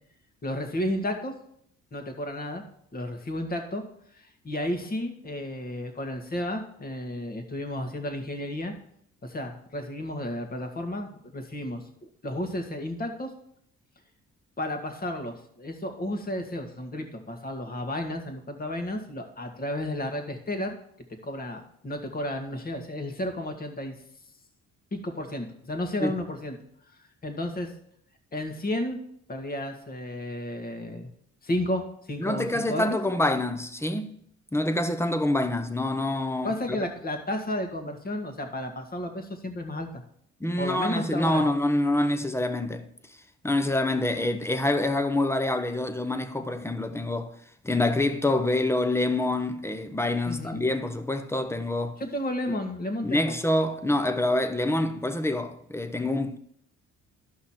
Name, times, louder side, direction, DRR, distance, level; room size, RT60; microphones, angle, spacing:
voice 1, 0.4-1.3 1.9-2.6 2.9-3.8 4.1-8.7 9.2-11.8 12.2-13.3 14.6-20.8 21.2-23.9 24.9-26.6 27.2-27.7 28.3-29.0 29.3-31.1 31.4-33.0 36.4-40.0 40.6-41.5 50.3-50.7 52.0-53.4, left 1 dB, 30° left, 1.8 m, -32 dB
voice 2, 32.2-34.1 34.5-36.8 40.4-42.9 43.4-47.3 47.6-52.0 53.0-56.4, left 1 dB, 10° left, 0.9 m, -26 dB
12.5 x 5.7 x 4.4 m
cardioid pair, 90°, 30 cm